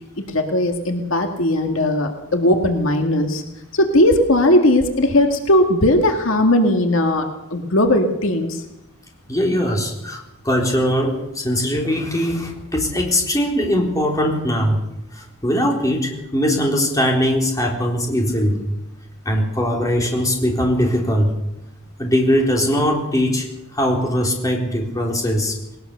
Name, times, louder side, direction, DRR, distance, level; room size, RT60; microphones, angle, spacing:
voice 1, 0.2-3.4 3.7-8.6, left 1 dB, 70° left, 4 dB, 2.0 m, -18 dB
voice 2, 9.3-14.8 15.1-18.6 19.3-21.3 22.0-23.5 23.7-25.6, equal, 15° left, 0 dB, 3.9 m, -20 dB
20.0 x 19.0 x 6.8 m, 0.90 s
head